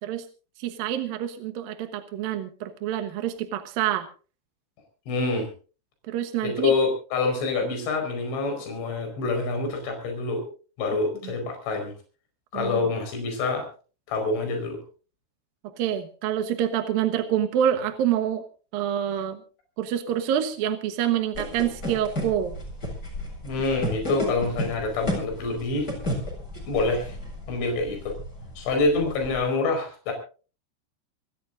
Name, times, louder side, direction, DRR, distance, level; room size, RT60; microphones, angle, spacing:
voice 1, 0.6-4.1 6.1-6.7 11.2-11.3 12.5-12.8 15.6-18.4 18.7-19.4 19.8-22.5, right 10 dB, 70° right, 7 dB, 2.3 m, -27 dB
voice 2, 5.1-5.5 6.4-10.4 10.8-11.9 12.5-13.7 14.1-14.8 23.4-25.9 26.7-27.2 27.5-28.2 28.6-30.1, left 3 dB, 70° left, 4 dB, 7.1 m, -26 dB
sound 1, 21.3-29.4, left 1 dB, 20° left, 7.9 m, -33 dB
28.0 x 14.5 x 2.6 m, 0.36 s
omnidirectional pair, 5.6 m